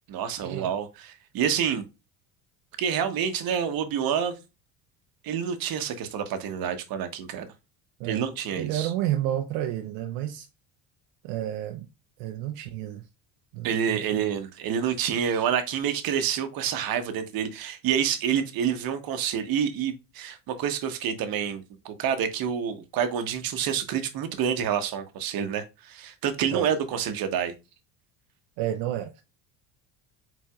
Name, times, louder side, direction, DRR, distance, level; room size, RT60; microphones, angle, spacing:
voice 1, 0.1-1.8 2.8-4.4 5.2-7.5 8.0-8.9 13.6-27.5, right 8 dB, 55° right, 1.1 m, -28 dB
voice 2, 8.6-10.5 11.2-11.9 12.2-13.0 13.5-14.2 15.2-15.5 26.5-26.7 28.6-29.2, right 12 dB, 75° right, 0.7 m, -31 dB
4.6 x 4.0 x 2.3 m
supercardioid pair, 100°, 42 cm